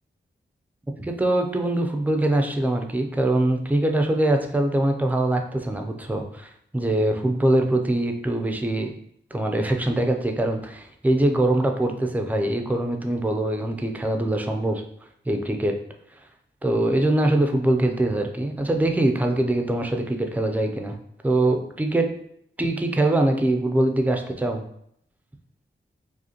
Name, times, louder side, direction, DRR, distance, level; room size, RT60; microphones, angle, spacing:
voice 1, 1.0-8.9 9.3-14.8 15.3-15.7 16.6-21.0 21.2-22.1 22.6-24.6, right 1 dB, 10° right, 4 dB, 0.4 m, -23 dB
4.9 x 2.1 x 2.8 m, 0.70 s
wide cardioid pair, 125°, 20 cm